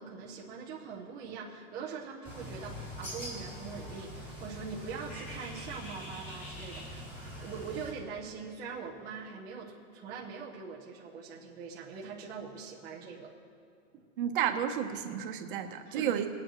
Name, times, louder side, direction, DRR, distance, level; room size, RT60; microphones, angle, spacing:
voice 1, 0.0-13.3 13.9-14.0 15.8-16.1, right 5 dB, 10° right, -6 dB, 0.6 m, -43 dB
Bird, 2.2-7.9, equal, 20° left, 3.3 m, -43 dB
voice 2, 14.2-16.3, right 9 dB, 40° right, 5 dB, 1.0 m, -31 dB
22.0 x 9.1 x 3.1 m, 2.4 s
supercardioid pair, 175°, 39 cm